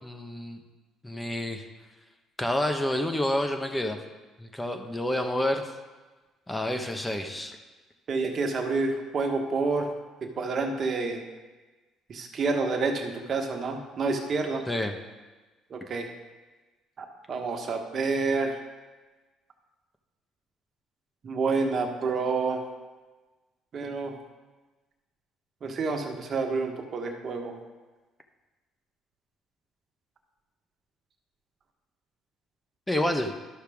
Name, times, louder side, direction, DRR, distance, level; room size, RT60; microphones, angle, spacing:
voice 1, 0.0-0.6 1.0-1.6 2.4-4.0 4.4-5.6 6.5-7.6 14.7-14.9 32.9-33.3, left 1 dB, 10° left, 5 dB, 1.0 m, -28 dB
voice 2, 8.1-9.9 10.4-11.2 12.1-14.6 15.7-16.1 17.0-18.6 21.2-22.7 23.7-24.2 25.6-27.6, right 4 dB, 45° right, 3 dB, 1.3 m, -28 dB
12.0 x 6.5 x 3.6 m, 1.2 s
supercardioid pair, 85°, 0 cm